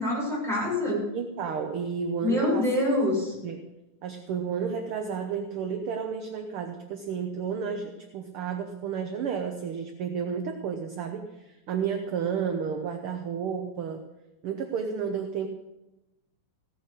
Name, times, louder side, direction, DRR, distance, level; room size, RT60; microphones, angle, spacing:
voice 1, 0.0-1.0 2.2-3.3, left 1 dB, ahead, -6 dB, 6.5 m, -25 dB
voice 2, 0.9-2.7 3.4-3.7 4.0-14.0 14.4-15.5, right 6 dB, 60° right, 5 dB, 1.6 m, -32 dB
16.0 x 8.3 x 6.5 m, 0.97 s
omnidirectional pair, 3.3 m